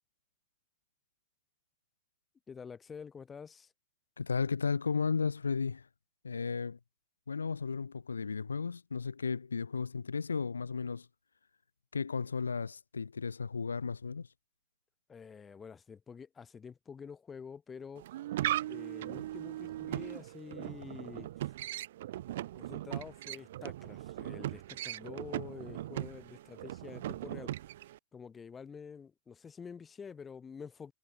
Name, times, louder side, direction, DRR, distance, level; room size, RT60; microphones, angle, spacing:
voice 1, 2.5-3.7 15.1-18.1 18.6-21.5 22.5-27.5 28.1-30.9, left 6 dB, 20° left, 0.9 m, -48 dB
voice 2, 4.2-5.9 6.2-6.8 7.3-11.1 11.9-14.3, left 5 dB, 75° left, 0.4 m, -34 dB
sound 1, 18.0-28.0, right 14 dB, 55° right, 0.5 m, -39 dB
figure-of-eight pair, 90°, 0 cm